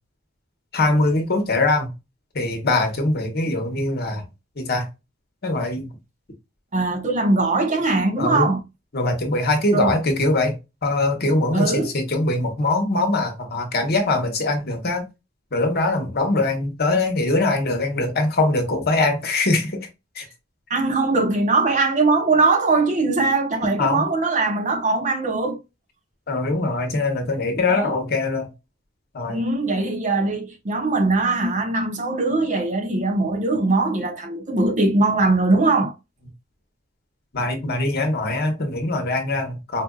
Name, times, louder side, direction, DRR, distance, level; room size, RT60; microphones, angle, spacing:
voice 1, 0.7-1.9 2.3-4.2 4.6-4.9 5.4-5.9 8.2-8.5 8.9-10.5 10.8-15.1 15.5-19.8 20.1-20.3 23.8-24.0 26.3-28.5 29.1-29.4 37.3-39.8, left 2 dB, 50° left, 1.0 m, -22 dB
voice 2, 6.7-8.6 9.7-10.0 11.5-11.9 20.7-25.6 27.7-28.0 29.3-35.9, right 3 dB, 35° right, 0.7 m, -21 dB
4.3 x 2.5 x 2.3 m
head